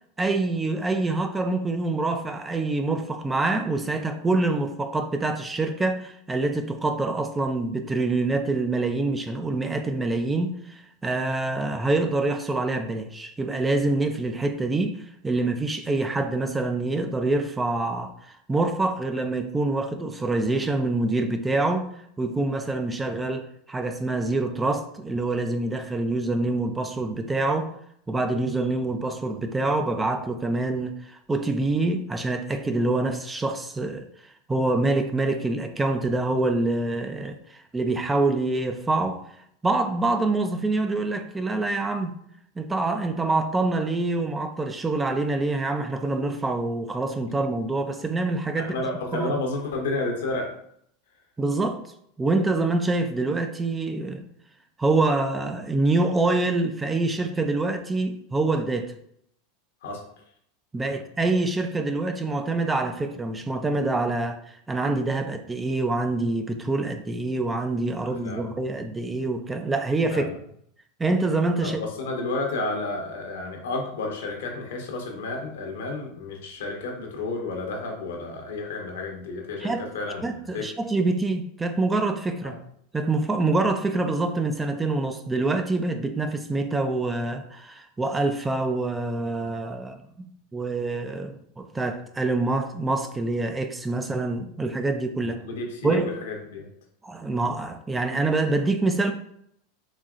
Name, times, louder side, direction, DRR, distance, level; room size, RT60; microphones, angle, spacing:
voice 1, 0.2-21.9 22.2-27.7 28.1-34.1 34.5-39.2 39.6-42.2 42.6-48.8 49.1-49.3 51.4-51.8 52.2-54.2 54.8-58.9 60.7-70.3 71.0-71.8 79.6-79.9 80.2-82.6 82.9-90.3 90.5-95.4 95.8-96.1 97.0-99.1, right 2 dB, 15° right, 7 dB, 0.4 m, -26 dB
voice 2, 48.6-50.5 59.8-60.0 68.0-68.4 70.1-70.3 71.6-80.7 82.4-82.6 95.4-96.7, left 2 dB, 80° left, 2 dB, 0.9 m, -31 dB
4.0 x 2.9 x 2.4 m, 0.69 s
hypercardioid pair, 105°, 0 cm